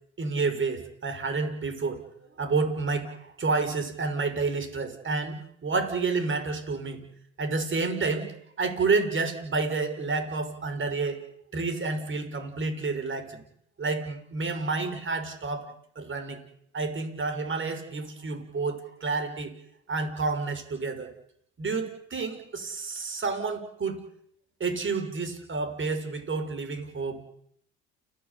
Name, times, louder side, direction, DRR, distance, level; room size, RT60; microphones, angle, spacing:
voice 1, 0.2-2.0 2.4-7.1 7.4-11.2 11.5-13.4 13.8-15.7 16.0-16.4 16.7-19.5 19.9-21.1 21.6-24.0 24.6-27.2, right 4 dB, 35° right, 8 dB, 5.8 m, -29 dB
29.5 x 16.0 x 8.5 m, 0.71 s
supercardioid pair, 85°, 33 cm